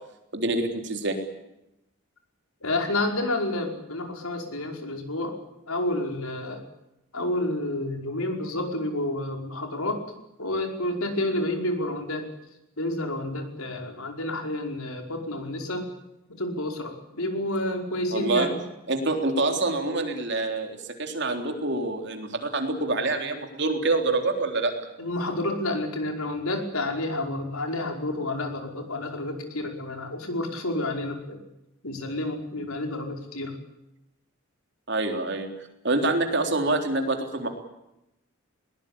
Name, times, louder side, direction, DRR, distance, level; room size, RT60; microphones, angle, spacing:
voice 1, 0.3-1.2 18.1-18.5 18.9-24.7 34.9-35.5 35.8-37.5, right 2 dB, 50° right, 4 dB, 3.7 m, -26 dB
voice 2, 2.6-5.4 5.7-6.6 7.1-10.0 10.4-12.3 12.8-15.9 16.4-18.6 25.0-31.4 31.8-33.5, left 1 dB, 85° left, 3 dB, 5.2 m, -29 dB
21.5 x 20.0 x 8.7 m, 0.89 s
head